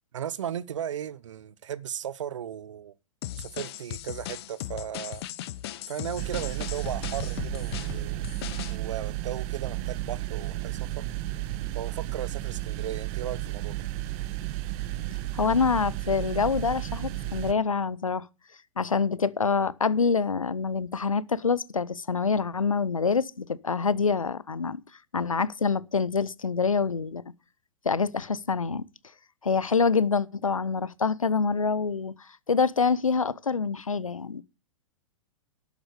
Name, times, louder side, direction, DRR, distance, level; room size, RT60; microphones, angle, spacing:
voice 1, 0.1-2.9 3.4-5.2 5.9-8.3 8.7-11.0 11.7-13.7, right 9 dB, 65° right, 0.8 m, -36 dB
sound 1, 3.2-8.8, left 13 dB, 50° left, 0.9 m, -38 dB
sound 2, 6.2-17.5, right 15 dB, 40° right, 1.1 m, -33 dB
voice 2, 15.3-18.3 18.8-24.8 25.1-27.2 27.8-28.9 29.4-34.4, left 5 dB, 85° left, 0.7 m, -26 dB
12.0 x 9.0 x 5.1 m
figure-of-eight pair, 110°, 17 cm